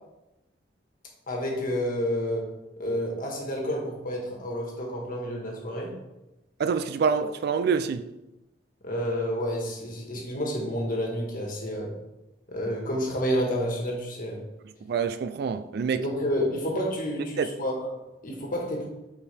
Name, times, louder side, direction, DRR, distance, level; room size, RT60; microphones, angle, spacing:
voice 1, 1.3-2.5 2.8-5.9 8.8-11.9 12.5-14.4 15.9-18.8, equal, 50° left, 1.6 m, -29 dB
voice 2, 6.6-8.0 14.9-16.0 17.4-17.5, right 6 dB, 60° right, 0.3 m, -26 dB
7.0 x 4.6 x 3.4 m
head